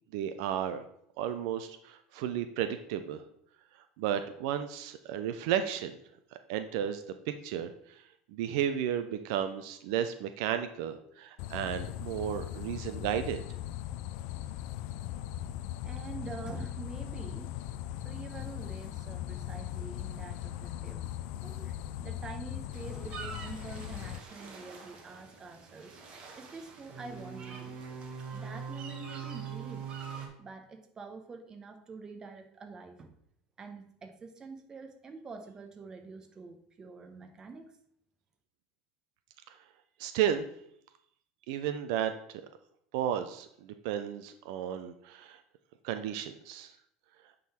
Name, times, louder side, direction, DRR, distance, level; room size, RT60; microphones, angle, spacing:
voice 1, 0.1-0.9 1.2-3.2 4.0-6.0 6.5-13.4 39.5-39.6 40.0-40.5 41.5-42.4 42.9-45.4 45.8-46.8, right 10 dB, 70° right, 9 dB, 0.5 m, -33 dB
sound 1, 11.4-24.2, left 12 dB, 60° left, 0.4 m, -39 dB
voice 2, 15.8-17.5 18.0-26.0 26.3-27.7 28.3-29.8 30.4-33.1 33.6-37.7, right 4 dB, 20° right, 5 dB, 1.0 m, -46 dB
sound 2, 22.7-30.3, right 6 dB, 35° right, 1.5 m, -43 dB
9.3 x 3.9 x 4.3 m, 0.70 s
supercardioid pair, 140°, 3 cm